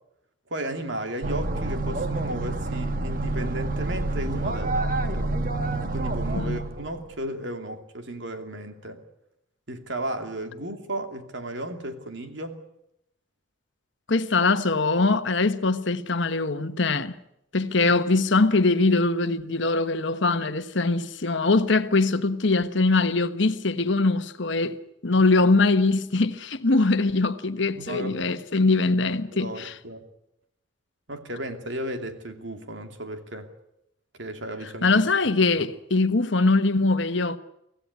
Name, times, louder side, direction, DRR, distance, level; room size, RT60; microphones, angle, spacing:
voice 1, 0.5-5.4 5.9-9.0 9.7-12.6 27.8-28.2 29.3-30.1 31.1-33.5 34.2-35.0 35.6-35.7, right 1 dB, 60° right, 2.7 m, -34 dB
sound 1, 1.2-7.1, right 2 dB, 40° right, 1.3 m, -28 dB
voice 2, 14.1-17.1 17.5-24.8 25.0-29.7 34.8-37.4, left 3 dB, 60° left, 1.2 m, -22 dB
25.0 x 16.0 x 9.7 m
head